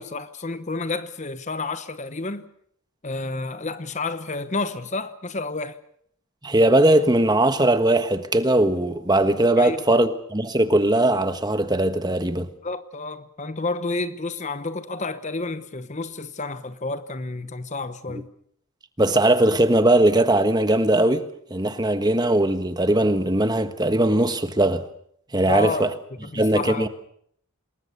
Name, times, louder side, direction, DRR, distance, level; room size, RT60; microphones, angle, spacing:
voice 1, 0.0-2.5 3.0-5.8 9.6-10.0 12.6-18.3 25.5-25.9 26.2-26.9, left 3 dB, 30° left, 0.9 m, -30 dB
voice 2, 6.4-12.5 18.1-18.2 19.0-21.2 21.5-24.8 25.3-25.9 26.3-26.9, right 1 dB, 20° right, 1.4 m, -20 dB
27.5 x 20.5 x 6.9 m
head